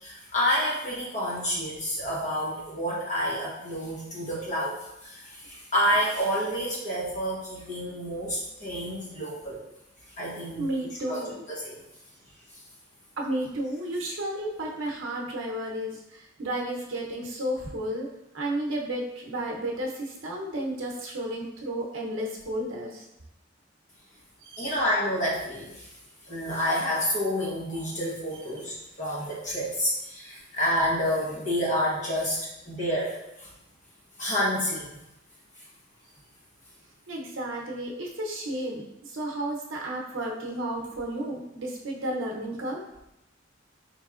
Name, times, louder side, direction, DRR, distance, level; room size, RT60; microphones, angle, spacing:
voice 1, 0.0-9.6 10.2-10.7 11.0-11.8 24.6-25.9 26.3-32.4 32.7-33.5 34.2-35.0, equal, 40° left, -5 dB, 1.1 m, -29 dB
voice 2, 10.6-11.4 13.2-18.1 18.3-23.0 24.4-24.8 37.1-42.8, right 1 dB, 85° right, -1 dB, 0.8 m, -32 dB
4.2 x 3.2 x 2.5 m, 0.88 s
head